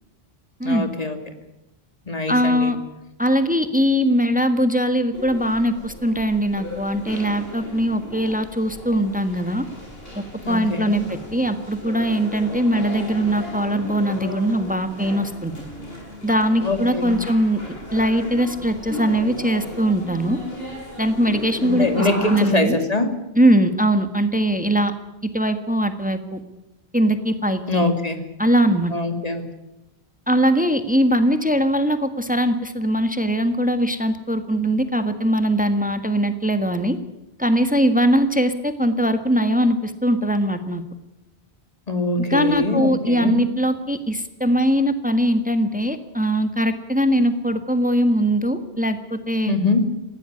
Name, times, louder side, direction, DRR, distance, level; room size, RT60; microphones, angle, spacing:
voice 1, 0.6-1.2 2.1-2.7 10.4-11.0 16.6-17.2 21.6-23.1 27.7-28.2 28.9-29.4 41.9-43.4 49.5-49.9, left 2 dB, 35° left, 7 dB, 2.7 m, -23 dB
voice 2, 2.3-2.8 3.2-9.6 10.1-15.5 16.2-17.6 17.9-20.4 21.0-22.8 23.3-24.9 25.2-26.4 26.9-27.8 28.4-28.9 30.3-37.0 37.4-40.8 42.3-49.6, equal, 10° right, 9 dB, 1.6 m, -21 dB
sound 1, 5.1-22.4, left 1 dB, 60° left, 6.8 m, -36 dB
20.0 x 16.0 x 9.8 m, 0.95 s
omnidirectional pair, 1.1 m